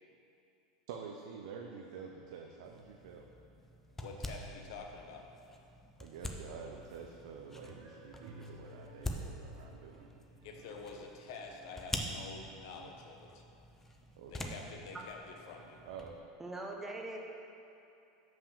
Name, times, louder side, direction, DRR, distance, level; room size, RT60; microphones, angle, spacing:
voice 1, 0.9-3.3 6.0-10.1 14.2-14.6 15.9-16.2, right 6 dB, 75° right, 2 dB, 0.6 m, -48 dB
sound 1, 2.6-16.2, left 1 dB, 10° left, 0.7 m, -46 dB
voice 2, 4.0-5.3 10.4-13.4 14.3-15.2 15.5-15.8, left 4 dB, 70° left, 2 dB, 1.0 m, -48 dB
sound 2, 7.5-12.9, right 1 dB, 45° right, 0.8 m, -57 dB
voice 3, 16.4-17.2, right 2 dB, 10° right, 0 dB, 1.0 m, -41 dB
5.9 x 5.0 x 6.6 m, 2.7 s
supercardioid pair, 110°, 3 cm